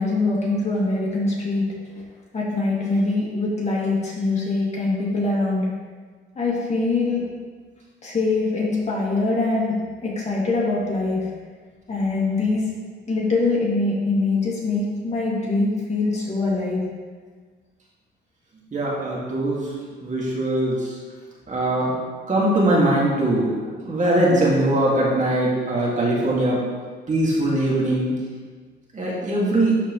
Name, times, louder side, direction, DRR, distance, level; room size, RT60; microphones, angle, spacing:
voice 1, 0.0-1.6 2.3-5.7 6.4-7.3 8.0-9.8 10.0-11.3 11.9-12.7 13.1-16.8 24.3-24.6, left 3 dB, 35° left, -5 dB, 2.4 m, -23 dB
voice 2, 18.7-19.7 20.0-21.0 21.5-22.0 22.3-26.7 27.1-28.2 28.9-29.8, right 1 dB, 40° right, -4 dB, 2.0 m, -21 dB
12.5 x 4.4 x 3.1 m, 1.5 s
cardioid pair, 90°, 20 cm